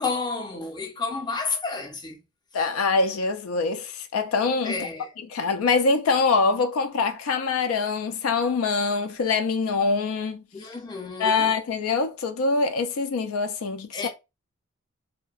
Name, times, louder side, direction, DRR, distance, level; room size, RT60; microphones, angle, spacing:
voice 1, 0.0-2.2 2.5-2.7 4.6-5.1 10.5-11.6 13.9-14.1, left 4 dB, 20° left, 0.5 m, -31 dB
voice 2, 2.5-4.9 5.3-10.4 11.2-14.1, left 4 dB, 85° left, 0.4 m, -24 dB
2.6 x 2.1 x 2.3 m
head